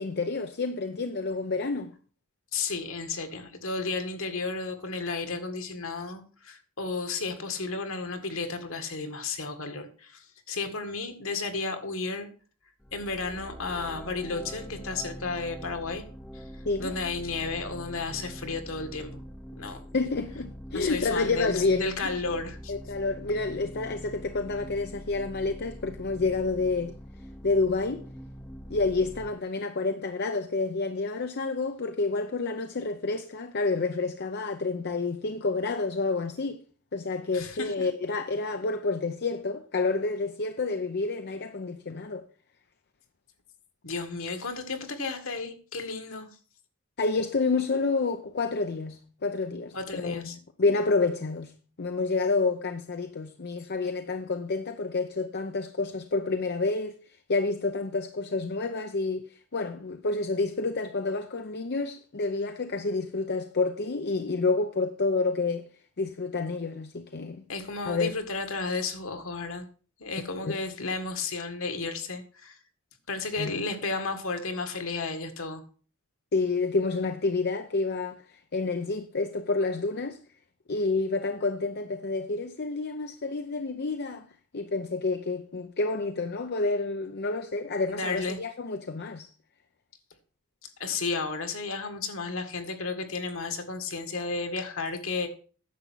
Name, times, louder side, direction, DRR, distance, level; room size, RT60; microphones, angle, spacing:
voice 1, 0.0-1.9 16.7-16.9 19.9-22.1 22.7-26.9 27.4-28.0 28.7-36.6 36.9-42.3 47.0-50.2 50.6-51.5 51.8-65.7 66.0-67.4 67.9-68.1 70.4-70.6 73.4-73.6 76.3-80.2 80.7-84.3 84.5-89.3, left 3 dB, 50° left, 0.7 m, -29 dB
voice 2, 2.5-12.3 12.9-16.0 16.3-16.4 16.8-19.2 19.6-19.8 20.7-22.7 37.3-37.9 43.8-46.3 49.7-50.4 67.5-69.7 70.0-72.6 73.1-75.6 87.9-88.4 90.6-95.3, left 3 dB, 65° left, 1.8 m, -33 dB
sound 1, 12.8-29.3, equal, 5° left, 0.7 m, -43 dB
10.5 x 7.0 x 6.2 m
head